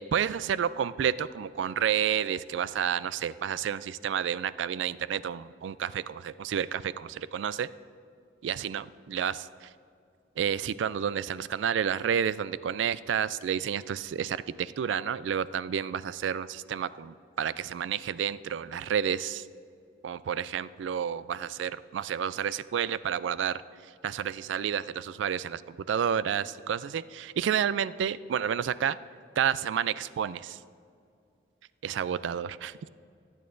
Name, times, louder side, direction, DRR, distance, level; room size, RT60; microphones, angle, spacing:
voice 1, 0.0-7.7 8.4-9.7 10.4-19.5 20.0-23.6 24.0-25.6 25.9-29.0 29.4-30.6 31.8-32.9, right 8 dB, 90° right, 17 dB, 0.3 m, -30 dB
19.5 x 8.6 x 2.6 m, 2.4 s
head